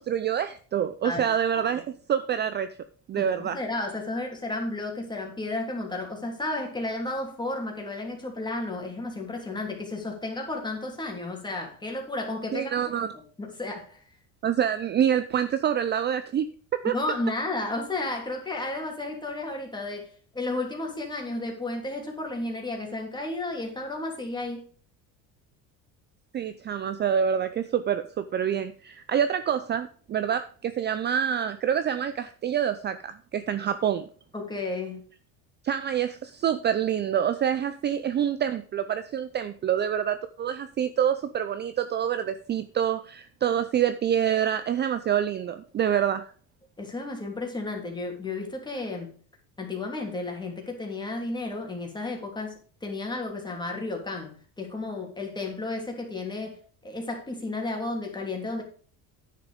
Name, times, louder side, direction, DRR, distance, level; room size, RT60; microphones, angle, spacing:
voice 1, 0.0-2.7 3.1-3.6 12.5-13.1 14.4-17.0 26.3-34.0 35.6-46.2, right 9 dB, 30° right, 0.5 m, -26 dB
voice 2, 1.0-1.6 3.2-12.7 13.4-14.0 16.9-24.7 34.3-35.0 46.8-49.2 49.6-58.6, left 2 dB, 10° left, 3.1 m, -33 dB
9.8 x 6.7 x 5.1 m
cardioid pair, 130°, 34 cm